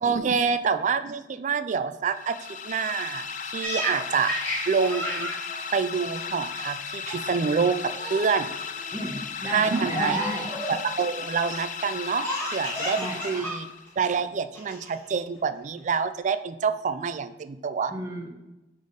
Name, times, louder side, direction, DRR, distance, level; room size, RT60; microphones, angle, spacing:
voice 1, 0.0-2.4 2.6-4.3 4.7-5.3 5.7-8.5 9.5-10.2 10.7-12.3 12.5-13.0 13.2-13.7 14.0-17.9, right 5 dB, 45° right, 12 dB, 0.3 m, -27 dB
sound 1, 2.1-14.0, left 6 dB, 45° left, 0.4 m, -36 dB
Laughter, 3.6-6.7 7.1-7.4 7.7-8.3 8.8-9.1 9.8-10.8 12.2-13.6 13.9-14.0 14.5-15.1, equal, 15° left, 1.7 m, -32 dB
voice 2, 8.9-10.5 13.0-13.5 17.9-18.3, equal, 20° right, 0 dB, 1.0 m, -34 dB
5.1 x 4.1 x 5.2 m, 1.0 s
head